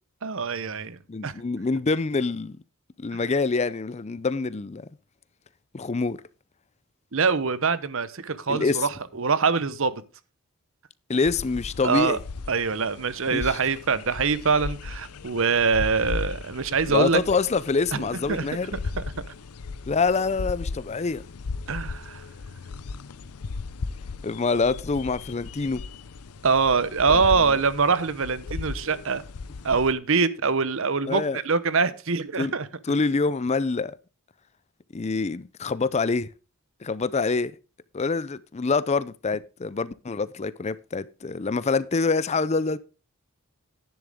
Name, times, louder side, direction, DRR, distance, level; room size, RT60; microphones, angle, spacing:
voice 1, 0.2-1.4 3.1-3.2 7.1-10.0 11.8-12.2 12.5-17.2 17.9-19.2 21.7-22.2 26.4-29.2 29.6-32.7, right 5 dB, 60° right, 0.9 m, -24 dB
voice 2, 1.1-2.6 3.0-4.9 5.7-6.2 8.5-8.8 11.1-12.2 13.3-13.5 16.9-18.7 19.9-21.2 24.2-25.8 27.1-27.2 31.1-31.4 32.4-32.5 32.9-33.9 34.9-36.3 36.8-37.5 37.9-42.8, left 4 dB, 30° left, 0.5 m, -25 dB
sound 1, 11.1-29.9, left 4 dB, 85° left, 0.6 m, -37 dB
11.0 x 10.5 x 3.6 m
head